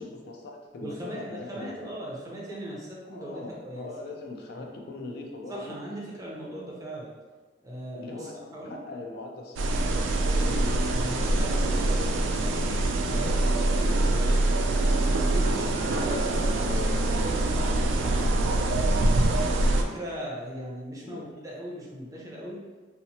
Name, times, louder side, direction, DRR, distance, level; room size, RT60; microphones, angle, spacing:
voice 1, 0.0-1.9 3.1-5.8 7.9-8.3 8.7-9.7 10.4-10.6 16.6-16.9 21.0-21.3, left 3 dB, 55° left, 1 dB, 0.3 m, -40 dB
voice 2, 0.8-3.9 4.5-4.7 5.5-7.1 7.6-8.8 10.1-14.4 15.1-19.1 19.6-22.6, right 1 dB, 20° right, -4 dB, 0.5 m, -39 dB
sound 1, 9.6-19.8, right 2 dB, 75° right, 0.3 m, -24 dB
2.8 x 2.0 x 2.7 m, 1.4 s
head